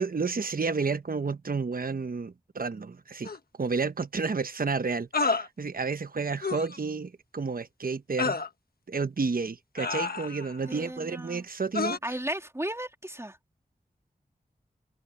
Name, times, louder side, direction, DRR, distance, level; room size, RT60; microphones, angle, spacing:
voice 1, 0.0-3.3 3.6-8.4 8.9-12.0, right 4 dB, 65° right, 1.0 m, -31 dB
sound 1, 3.2-3.4 5.1-5.5 6.4-6.8 8.2-8.5 9.8-10.6 11.7-12.0, left 4 dB, 70° left, 1.3 m, -29 dB
voice 2, 10.7-11.4 12.0-13.4, right 1 dB, 15° right, 3.0 m, -35 dB
cardioid pair, 40°, 16 cm